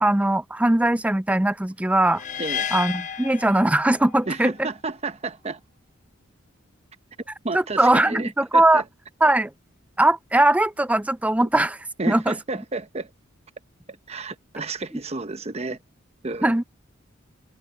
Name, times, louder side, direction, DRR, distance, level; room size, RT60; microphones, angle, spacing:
voice 1, 0.0-2.2 2.7-4.7 7.5-8.8 9.2-9.5 10.0-11.8 12.1-12.4 16.4-16.6, right 1 dB, 5° right, 0.4 m, -20 dB
sound 1, 2.1-4.3, left 8 dB, 40° left, 0.8 m, -31 dB
voice 2, 4.3-5.6 7.4-8.8 12.0-13.1 14.1-15.8 16.2-16.5, right 3 dB, 30° right, 1.0 m, -31 dB
head